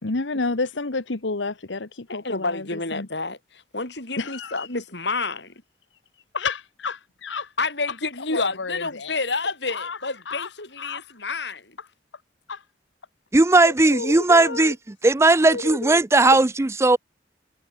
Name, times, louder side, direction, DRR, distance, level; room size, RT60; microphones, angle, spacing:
voice 1, 0.0-3.1 4.2-4.6 6.3-7.5 7.9-9.2 9.7-10.0 10.2-10.5 10.8-11.4 11.8-11.9 12.5-12.6 13.6-14.7 15.5-16.0 16.3-16.4, left 3 dB, 85° left, 1.3 m, -31 dB
voice 2, 2.1-5.5 7.6-11.6, left 3 dB, 65° left, 6.0 m, -29 dB
voice 3, 13.3-14.7 15.0-17.0, right 2 dB, 15° right, 0.4 m, -17 dB
head